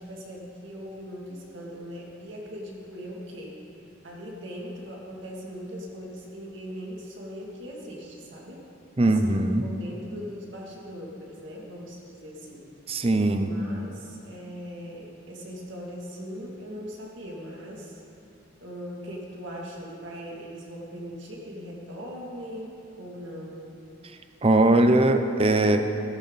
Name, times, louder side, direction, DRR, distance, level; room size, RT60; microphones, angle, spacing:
voice 1, 0.0-3.6 4.0-8.6 9.0-12.6 13.4-18.0 18.6-23.7, equal, 60° right, -2 dB, 2.5 m, -40 dB
voice 2, 9.0-9.6 12.9-13.5 24.4-25.9, right 2 dB, 25° right, 7 dB, 0.6 m, -20 dB
15.5 x 13.5 x 4.1 m, 2.8 s
head